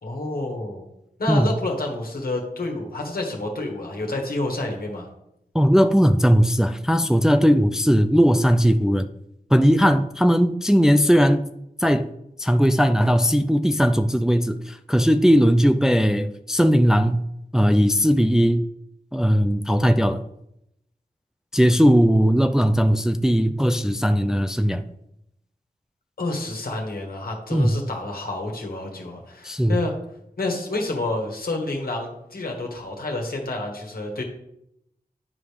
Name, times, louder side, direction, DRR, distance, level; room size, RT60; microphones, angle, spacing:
voice 1, 0.0-0.8 1.2-5.1 22.1-22.2 26.2-29.9 30.4-34.2, left 2 dB, 75° left, 1 dB, 1.6 m, -29 dB
voice 2, 5.5-9.1 9.5-11.4 11.8-12.1 12.4-17.3 17.5-18.7 19.1-20.2 21.5-24.8 27.5-27.7 29.4-29.8, equal, 5° right, 9 dB, 0.4 m, -18 dB
9.7 x 4.8 x 3.4 m, 0.81 s
wide cardioid pair, 65°, 15 cm